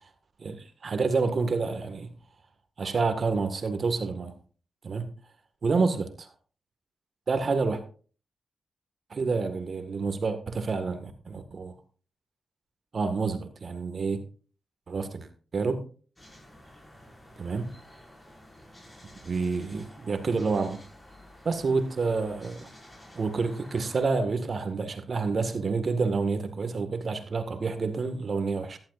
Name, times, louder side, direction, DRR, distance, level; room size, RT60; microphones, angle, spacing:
voice 1, 0.4-2.1 2.8-4.3 4.8-5.1 5.6-6.3 7.3-7.8 9.1-11.7 12.9-14.2 14.9-15.3 15.5-15.8 17.4-17.7 19.2-20.8 21.4-22.7 23.1-28.8, right 4 dB, 55° right, 1.8 m, -28 dB
sound 1, 16.2-24.1, left 1 dB, 20° left, 6.1 m, -51 dB
14.0 x 11.5 x 2.6 m
supercardioid pair, 45°, 0 cm